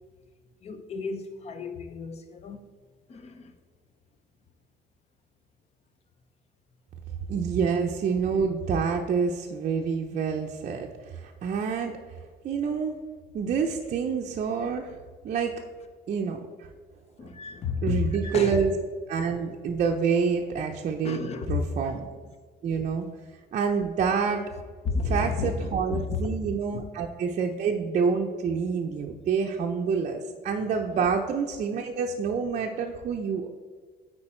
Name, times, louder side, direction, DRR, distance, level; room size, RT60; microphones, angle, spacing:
voice 1, 0.6-2.7 3.1-3.6 17.2-18.6 21.0-21.6 24.8-26.2 26.7-26.8 30.9-31.1, left 5 dB, 40° left, 9 dB, 0.7 m, -32 dB
voice 2, 7.3-12.2 12.4-13.0 13.3-15.0 15.2-15.5 16.1-16.4 17.8-18.7 19.1-22.1 22.6-23.1 23.5-24.5 25.0-33.5, right 6 dB, 45° right, 1 dB, 0.5 m, -27 dB
8.8 x 4.4 x 4.3 m, 1.5 s
cardioid pair, 150°, 17 cm